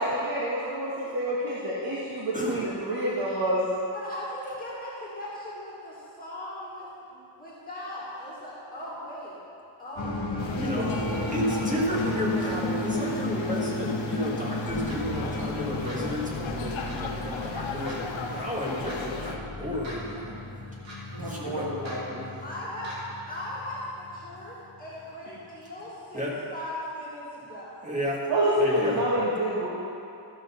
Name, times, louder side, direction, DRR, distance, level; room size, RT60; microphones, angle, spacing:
voice 1, 0.0-3.6 21.1-22.3 28.3-28.5 28.9-29.7, right 1 dB, 50° right, -8 dB, 1.6 m, -28 dB
voice 2, 2.3-2.6 10.6-20.4 21.2-21.7 26.1-26.3 27.8-28.2 28.6-29.0, equal, 15° right, -5 dB, 1.8 m, -32 dB
voice 3, 3.9-9.4 9.8-10.2 10.6-11.1 22.4-27.8, left 1 dB, 20° left, -9 dB, 2.2 m, -38 dB
sound 1, 10.0-25.1, left 1 dB, 45° left, 1.4 m, -34 dB
sound 2, 10.4-19.4, left 5 dB, 85° left, 1.0 m, -37 dB
sound 3, 14.9-15.0 15.8-16.0 16.9-17.0 17.8-18.0 18.8-19.0 19.8-20.0 20.8-21.0 21.8-22.0 22.8-23.0, right 1 dB, 80° right, 2.5 m, -42 dB
13.5 x 6.3 x 5.7 m, 2.7 s
wide cardioid pair, 180°, 46 cm